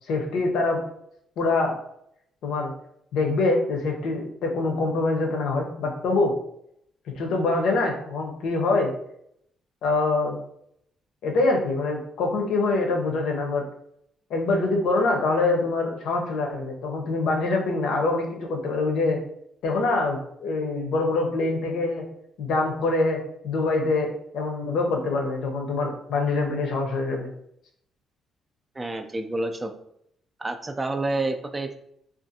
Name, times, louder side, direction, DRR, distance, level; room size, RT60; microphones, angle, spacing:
voice 1, 0.1-0.8 1.4-1.7 2.4-2.7 3.1-6.3 7.2-8.9 9.8-10.4 11.2-13.6 14.3-19.2 19.6-22.0 22.4-23.2 23.4-27.3, left 3 dB, 80° left, 2 dB, 0.6 m, -24 dB
voice 2, 28.8-29.7 30.4-31.8, right 2 dB, 20° right, 7 dB, 0.3 m, -28 dB
2.5 x 2.4 x 2.6 m, 0.73 s
cardioid pair, 90°, 0 cm